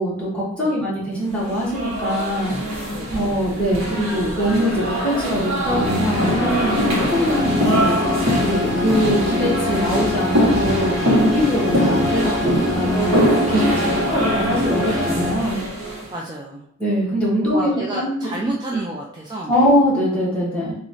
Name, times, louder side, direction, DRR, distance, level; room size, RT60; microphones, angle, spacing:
voice 1, 0.0-8.0 8.4-13.2 13.5-13.7 14.1-15.6 16.8-18.2 19.5-20.8, equal, 5° left, -8 dB, 1.2 m, -22 dB
sound 1, 1.4-16.1, equal, 85° right, 1.0 m, -23 dB
sound 2, 5.6-15.3, left 2 dB, 55° right, 0.9 m, -24 dB
voice 2, 13.6-14.0 16.1-16.6 17.4-19.6, right 2 dB, 20° right, -3 dB, 0.3 m, -30 dB
3.0 x 2.4 x 4.0 m, 0.73 s
head